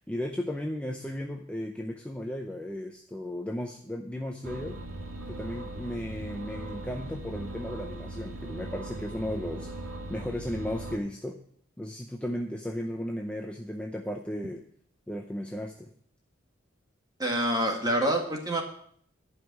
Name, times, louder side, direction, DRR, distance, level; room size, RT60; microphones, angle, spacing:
voice 1, 0.0-4.8 5.3-11.4 11.8-14.6 15.1-15.9, left 1 dB, 5° left, 2 dB, 0.6 m, -35 dB
sound 1, 4.4-11.0, right 2 dB, 90° right, 1.6 m, -39 dB
voice 2, 17.2-18.6, right 1 dB, 20° right, 2 dB, 1.8 m, -26 dB
11.0 x 5.3 x 8.2 m, 0.62 s
head